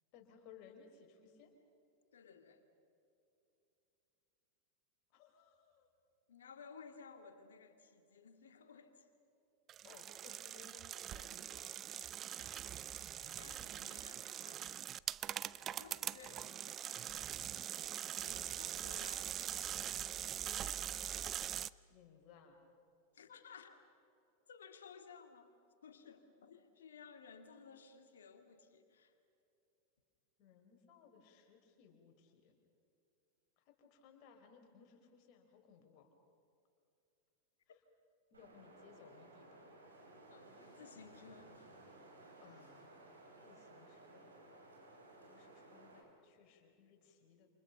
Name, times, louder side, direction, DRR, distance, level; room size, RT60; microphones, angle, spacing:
voice 1, 0.1-1.5 5.1-5.9 9.8-11.9 21.9-22.6 30.4-32.5 33.6-36.1 38.3-39.6 42.4-42.9 43.4-44.3 45.2-47.5, left 6 dB, 40° left, 3 dB, 4.3 m, -62 dB
voice 2, 2.1-2.6 6.3-9.1 13.2-14.7 15.8-16.5 16.9-17.1 18.2-19.6 23.1-23.8 24.5-25.6 25.8-29.1 40.3-41.7, left 6 dB, 65° left, 7 dB, 2.4 m, -57 dB
sound 1, 9.7-21.7, right 10 dB, 30° right, 0.5 m, -43 dB
Wind, 38.3-46.0, right 2 dB, 75° right, 5.5 m, -58 dB
28.0 x 28.0 x 5.9 m, 2.7 s
figure-of-eight pair, 90°, 0 cm